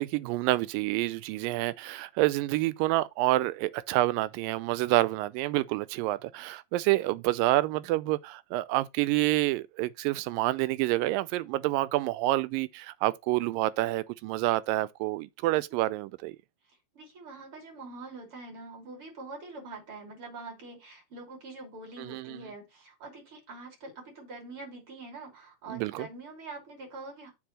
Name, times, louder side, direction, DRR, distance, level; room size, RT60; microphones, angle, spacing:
voice 1, 0.0-16.4 22.0-22.4 25.7-26.1, right 17 dB, 90° right, 2.3 m, -28 dB
voice 2, 17.0-27.3, right 3 dB, 40° right, 3.5 m, -44 dB
7.2 x 3.4 x 6.3 m
omnidirectional pair, 3.9 m